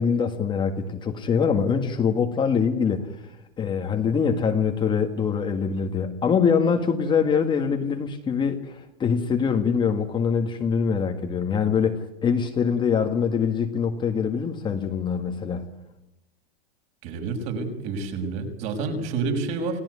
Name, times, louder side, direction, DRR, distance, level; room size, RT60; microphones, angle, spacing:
voice 1, 0.0-15.6, left 6 dB, 15° left, 3 dB, 1.7 m, -24 dB
voice 2, 17.0-19.8, right 4 dB, 40° right, 4 dB, 6.2 m, -29 dB
29.0 x 18.0 x 9.7 m, 0.87 s
supercardioid pair, 155°, 33 cm